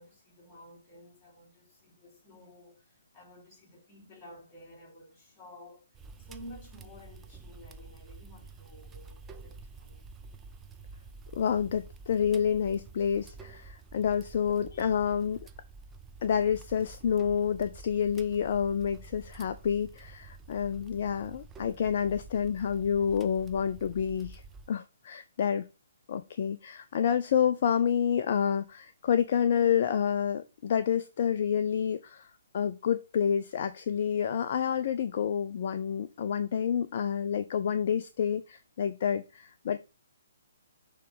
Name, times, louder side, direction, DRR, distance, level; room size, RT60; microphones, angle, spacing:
voice 1, 0.0-5.9 6.2-10.1, left 1 dB, 20° left, 2.9 m, -52 dB
sound 1, 5.9-24.7, right 4 dB, 15° right, 0.4 m, -49 dB
voice 2, 11.3-15.5 16.2-24.4 24.7-25.7 26.1-32.3 32.5-39.8, left 8 dB, 45° left, 0.4 m, -28 dB
6.6 x 3.2 x 5.2 m
figure-of-eight pair, 130°, 0 cm